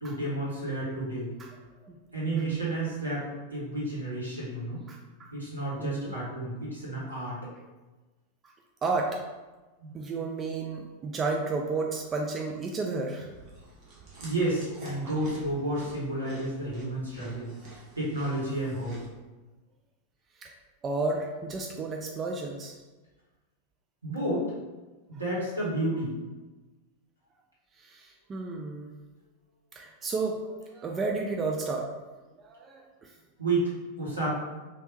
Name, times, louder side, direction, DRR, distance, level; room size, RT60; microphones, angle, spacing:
voice 1, 0.0-1.3 2.1-4.8 5.3-7.3 9.8-9.9 14.2-17.5 18.0-19.0 24.0-24.4 25.1-26.1 33.4-33.6 34.0-34.3, right 1 dB, 80° right, -7 dB, 1.3 m, -31 dB
voice 2, 2.3-2.6 4.9-5.3 5.8-6.1 8.8-9.1 9.9-13.3 17.7-17.8 20.4-20.5 20.8-22.8 27.8-28.9 29.7-31.9 32.4-33.1, right 3 dB, 25° right, 1 dB, 0.3 m, -32 dB
Chewing mastication, 13.2-19.1, right 2 dB, 40° right, 0.9 m, -49 dB
3.4 x 2.6 x 2.8 m, 1.2 s
figure-of-eight pair, 90°, 0 cm